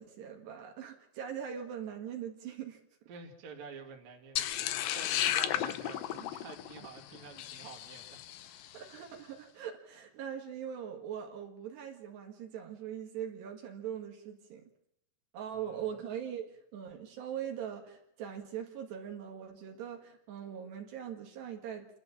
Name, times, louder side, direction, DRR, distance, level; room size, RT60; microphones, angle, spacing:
voice 1, 0.0-2.8 8.7-14.7 15.3-21.9, right 9 dB, 70° right, 1 dB, 3.8 m, -41 dB
voice 2, 3.1-8.7 15.5-15.8, right 5 dB, 45° right, 1 dB, 3.2 m, -49 dB
sound 1, 4.4-8.7, left 12 dB, 85° left, 2.0 m, -34 dB
28.5 x 12.5 x 7.4 m, 0.77 s
omnidirectional pair, 5.3 m